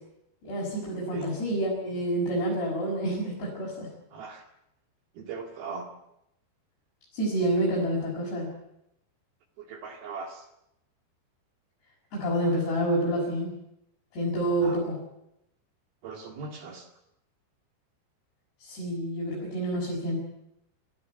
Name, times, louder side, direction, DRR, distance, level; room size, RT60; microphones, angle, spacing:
voice 1, 0.4-3.9 7.1-8.5 12.1-13.5 14.1-15.0 18.6-20.2, right 1 dB, 60° left, -5 dB, 8.0 m, -28 dB
voice 2, 4.1-4.5 5.2-5.9 9.6-10.5 14.6-14.8 16.0-16.9, right 4 dB, 60° right, 4 dB, 3.6 m, -39 dB
26.0 x 15.0 x 9.5 m, 0.83 s
omnidirectional pair, 5.5 m